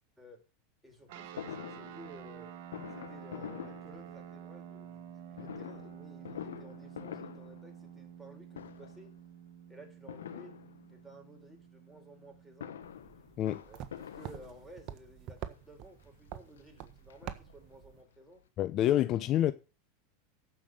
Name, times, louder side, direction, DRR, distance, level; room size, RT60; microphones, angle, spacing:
voice 1, 0.8-2.5 2.9-9.1 9.7-10.6 10.9-12.8 13.6-18.4, right 1 dB, 5° right, 5.2 m, -55 dB
sound 1, 1.1-12.9, right 9 dB, 60° right, 1.6 m, -50 dB
Fireworks, 1.4-4.6 5.3-8.3 8.5-9.1 10.1-11.2 12.3-15.0 15.7-15.8 16.1-16.2 16.6-17.8 18.1-18.2 18.4-18.5, left 9 dB, 85° left, 1.4 m, -46 dB
sound 2, 12.8-18.0, right 10 dB, 45° right, 1.5 m, -47 dB
voice 2, 18.6-19.5, left 12 dB, 45° left, 0.9 m, -27 dB
14.0 x 5.9 x 6.7 m
hypercardioid pair, 100°, 0 cm